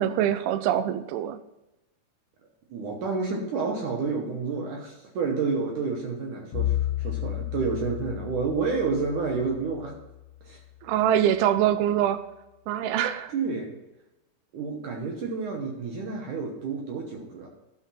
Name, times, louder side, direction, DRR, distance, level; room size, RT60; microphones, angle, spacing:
voice 1, 0.0-1.4 10.8-12.2 12.7-13.3, right 10 dB, 85° right, 11 dB, 2.2 m, -24 dB
voice 2, 2.7-9.9 10.4-10.6 13.3-13.8 14.5-17.5, right 4 dB, 70° right, 1 dB, 2.0 m, -29 dB
Bowed string instrument, 6.5-10.7, left 14 dB, 80° left, 2.4 m, -32 dB
12.5 x 5.1 x 5.5 m, 0.96 s
omnidirectional pair, 5.0 m